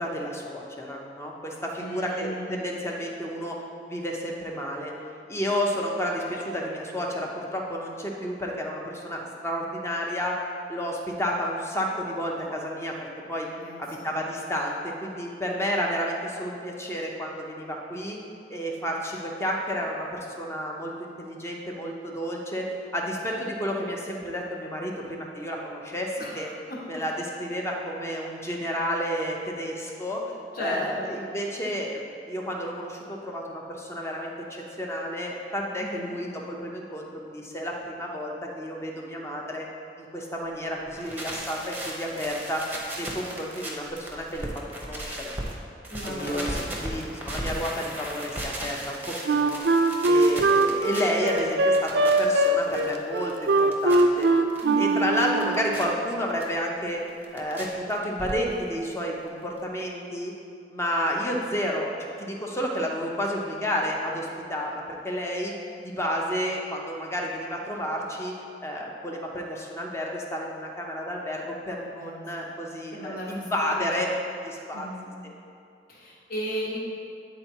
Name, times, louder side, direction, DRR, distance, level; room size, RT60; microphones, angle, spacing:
voice 1, 0.0-3.6 3.9-4.9 5.3-10.4 10.7-13.5 13.8-18.2 18.5-26.5 26.9-30.2 30.6-39.7 40.0-42.7 43.0-44.5 44.8-45.3 46.0-49.6 50.1-54.3 54.8-57.1 57.3-60.3 60.7-65.5 65.8-68.4 68.6-74.1 74.4-74.9 75.2-75.3, equal, 15° left, -1 dB, 0.8 m, -31 dB
voice 2, 1.8-2.5 13.5-14.1 26.2-26.8 30.5-31.1 35.8-36.2 45.9-46.7 54.6-55.0 61.3-61.4 71.8-72.5 72.9-74.0 74.7-75.0 75.9-76.8, equal, 55° left, -4 dB, 1.4 m, -36 dB
sound 1, 40.8-45.5 45.8-54.6 55.0-55.8 56.4-56.5 56.9-57.6 57.9-58.7 59.0-59.1 59.3-59.4 59.6-59.7, right 1 dB, 10° right, 0.9 m, -36 dB
Wind instrument woodwind instrument, 49.3-55.6, right 2 dB, 70° right, 0.4 m, -21 dB
9.4 x 3.9 x 4.5 m, 2.4 s
head